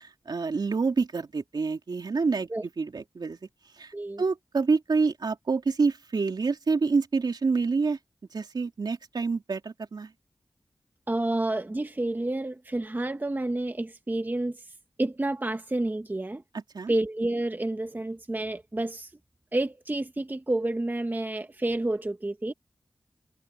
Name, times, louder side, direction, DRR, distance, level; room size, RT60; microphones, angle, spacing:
voice 1, 0.0-3.4 3.8-8.0 8.3-10.1 16.5-16.9, right 4 dB, 70° right, 3.3 m, -27 dB
voice 2, 11.1-14.6 15.0-16.4 16.9-19.1 19.5-22.5, right 2 dB, 25° right, 1.1 m, -29 dB
wide cardioid pair, 85°, 8 cm